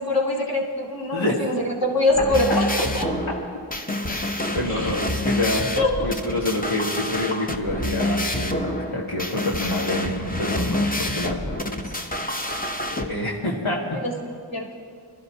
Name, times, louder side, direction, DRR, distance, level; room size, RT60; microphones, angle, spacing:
voice 1, 0.0-1.6 1.8-2.6 2.9-3.1 4.7-4.9 5.8-5.9 13.9-14.1 14.5-14.7, left 2 dB, 45° left, -3 dB, 2.5 m, -23 dB
sound 1, 2.1-13.0, left 1 dB, 20° left, 0.9 m, -27 dB
voice 2, 4.1-5.7 6.0-12.3 12.9-14.0, left 1 dB, 80° left, -5 dB, 1.7 m, -27 dB
25.0 x 13.0 x 2.8 m, 2.3 s
wide cardioid pair, 45°, 48 cm